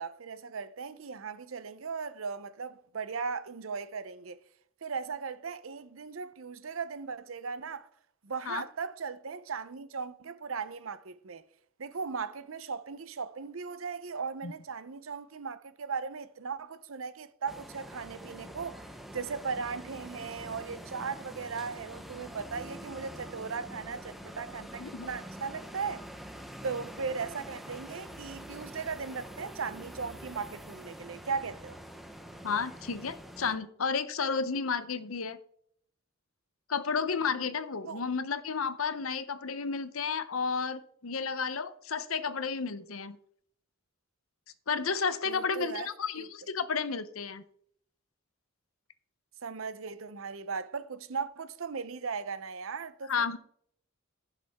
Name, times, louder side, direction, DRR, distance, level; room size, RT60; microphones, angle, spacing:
voice 1, 0.0-4.4 4.8-7.9 8.2-11.4 11.8-18.8 19.1-26.0 26.6-31.8 37.9-38.0 45.3-45.9 46.2-46.5 49.4-53.4, right 5 dB, 75° right, 0.7 m, -37 dB
sound 1, 17.5-33.6, equal, ahead, 0.9 m, -46 dB
voice 2, 32.4-35.4 36.7-43.2 44.7-47.4 53.1-53.4, left 5 dB, 85° left, 0.8 m, -32 dB
15.0 x 6.6 x 3.6 m
head